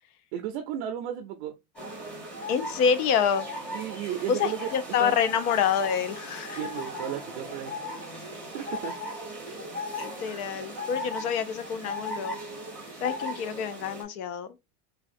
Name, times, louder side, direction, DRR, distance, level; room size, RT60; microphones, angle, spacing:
voice 1, 0.3-1.5 3.7-4.7 5.0-5.1 6.5-7.7 8.5-8.9, right 10 dB, 50° right, 0.4 m, -34 dB
sound 1, 1.8-14.0, left 1 dB, 5° left, 0.7 m, -37 dB
voice 2, 2.5-3.5 4.3-6.6 10.0-12.4 13.0-14.5, left 7 dB, 75° left, 0.6 m, -27 dB
3.3 x 2.3 x 2.5 m
supercardioid pair, 150°, 44 cm